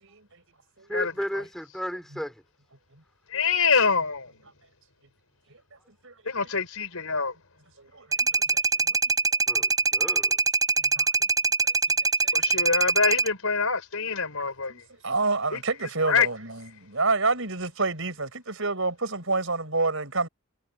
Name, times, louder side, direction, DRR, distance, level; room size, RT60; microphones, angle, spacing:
voice 1, 0.0-0.4 0.8-0.9 3.3-3.4 6.0-6.1 7.8-9.0 11.0-11.1 12.2-12.6 14.7-20.3, right 3 dB, 65° right, 6.3 m, -29 dB
voice 2, 0.9-2.4 9.5-10.4, equal, ahead, 4.3 m, -34 dB
voice 3, 3.3-4.3 6.2-7.3 12.3-14.8 15.5-15.6 16.1-16.3, left 5 dB, 75° left, 4.5 m, -25 dB
sound 1, 8.1-13.3, right 4 dB, 15° right, 6.1 m, -23 dB
head